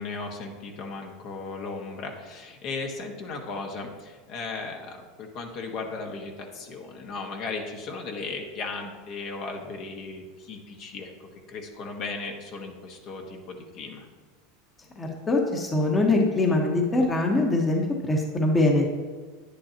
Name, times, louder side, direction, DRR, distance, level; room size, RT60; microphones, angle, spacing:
voice 1, 0.0-11.1 11.5-14.1, left 3 dB, 50° left, 2 dB, 1.5 m, -36 dB
voice 2, 15.0-18.9, left 2 dB, 15° left, 1 dB, 1.3 m, -23 dB
9.9 x 9.8 x 3.0 m, 1.4 s
supercardioid pair, 120°, 0 cm